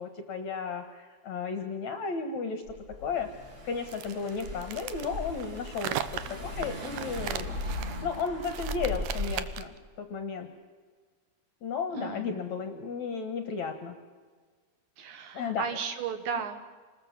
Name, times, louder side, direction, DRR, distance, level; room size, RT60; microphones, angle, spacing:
voice 1, 0.0-2.6 3.0-3.3 3.6-6.0 6.3-7.6 7.9-9.7 10.0-10.5 11.6-14.0 15.3-15.7, left 5 dB, 60° left, 7 dB, 2.1 m, -34 dB
Car / Engine, 2.7-9.6, left 1 dB, 40° right, 5.6 m, -38 dB
sound 1, 3.9-9.8, right 11 dB, 80° right, 1.7 m, -38 dB
voice 2, 11.9-12.4 15.0-16.6, right 7 dB, 65° right, 8 dB, 2.7 m, -35 dB
28.0 x 20.0 x 7.5 m, 1.5 s
omnidirectional pair, 4.8 m